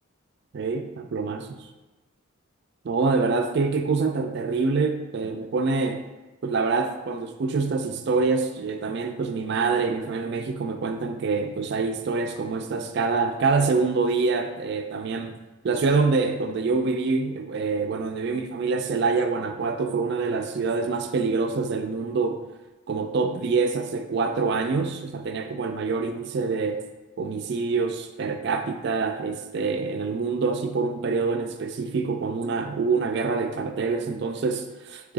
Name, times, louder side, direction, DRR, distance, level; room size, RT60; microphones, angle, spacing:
voice 1, 0.5-1.7 2.8-6.0 6.4-15.4 15.6-22.4 22.9-26.8 27.2-35.1, right 4 dB, 50° right, 6 dB, 0.3 m, -26 dB
4.7 x 2.7 x 3.9 m, 1.1 s
head